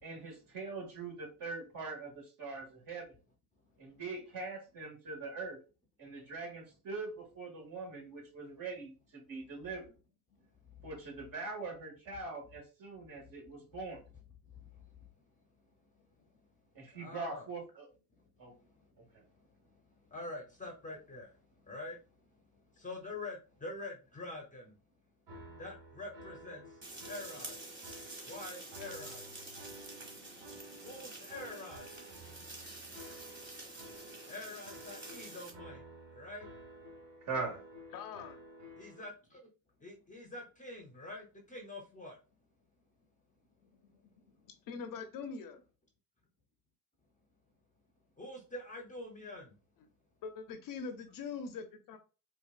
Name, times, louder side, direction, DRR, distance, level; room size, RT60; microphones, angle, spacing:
voice 1, 0.0-3.1 3.8-5.6 6.0-9.9 10.8-14.0 16.8-17.9 18.4-18.5 37.3-37.6, right 3 dB, 45° right, 0 dB, 2.0 m, -42 dB
voice 2, 17.0-17.5 20.1-21.3 21.7-22.0 22.8-24.7 25.6-26.6 27.1-27.5 28.3-29.2 30.8-31.8 34.3-35.8 36.1-36.5 38.8-39.4 39.8-42.2 48.2-49.5, left 2 dB, 15° left, 2 dB, 0.8 m, -45 dB
sound 1, 25.3-39.0, right 1 dB, 60° right, 1.9 m, -53 dB
sound 2, 26.8-35.5, right 2 dB, 25° right, 1.4 m, -48 dB
voice 3, 37.9-38.4 43.6-44.0 44.4-45.6 50.2-52.0, left 5 dB, 45° left, 7 dB, 0.7 m, -43 dB
4.3 x 2.5 x 2.4 m, 0.33 s
supercardioid pair, 85°, 47 cm